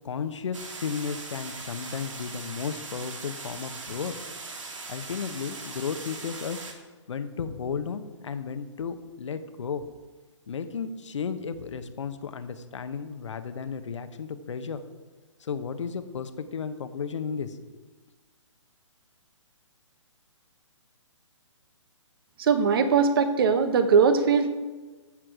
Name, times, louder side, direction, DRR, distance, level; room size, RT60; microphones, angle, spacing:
voice 1, 0.0-4.1 4.9-6.6 7.1-9.9 10.5-14.8 15.4-17.6, left 6 dB, 65° left, 10 dB, 1.1 m, -34 dB
sound 1, 0.5-6.7, right 3 dB, 70° right, 2.0 m, -40 dB
voice 2, 22.4-24.5, right 5 dB, 45° right, 10 dB, 1.0 m, -21 dB
14.5 x 6.3 x 4.8 m, 1.3 s
hypercardioid pair, 140°, 16 cm